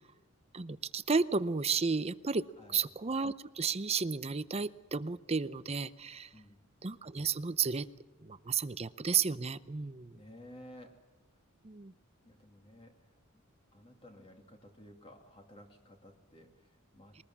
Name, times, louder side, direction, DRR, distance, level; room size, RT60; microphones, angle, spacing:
voice 1, 0.5-2.4 2.7-6.3 6.8-7.9 8.2-10.2 11.6-11.9, right 5 dB, 30° right, 14 dB, 0.6 m, -33 dB
voice 2, 6.3-6.7 10.1-11.0 12.2-13.2 13.7-17.2, left 1 dB, 25° left, 2 dB, 2.5 m, -55 dB
22.0 x 19.5 x 7.3 m, 1.1 s
head